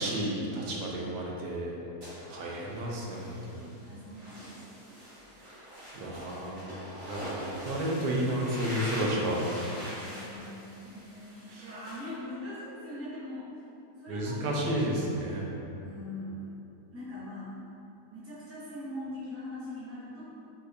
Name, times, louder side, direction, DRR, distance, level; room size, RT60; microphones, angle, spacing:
voice 1, 0.0-1.8 2.3-3.7 5.5-5.6 5.9-9.4 11.5-11.7 14.1-15.5, right 1 dB, 80° right, -2 dB, 1.1 m, -32 dB
sound 1, 2.0-12.0, equal, 45° right, 1.3 m, -43 dB
voice 2, 3.8-5.0 9.9-10.6 10.8-13.5 14.0-15.1 15.8-16.4 16.9-17.5 18.1-20.2, left 1 dB, 15° right, -10 dB, 0.5 m, -42 dB
4.2 x 2.3 x 2.6 m, 2.8 s
omnidirectional pair, 1.6 m